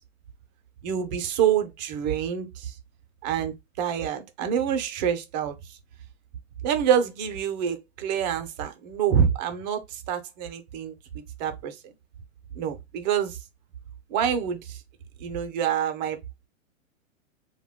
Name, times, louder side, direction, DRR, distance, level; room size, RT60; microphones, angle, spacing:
voice 1, 0.8-2.5 3.2-5.8 6.6-10.9 11.4-11.8 12.5-13.4 14.1-14.8 15.2-16.2, right 8 dB, 35° right, 0.5 m, -26 dB
2.2 x 2.2 x 3.5 m
hypercardioid pair, 125°, 41 cm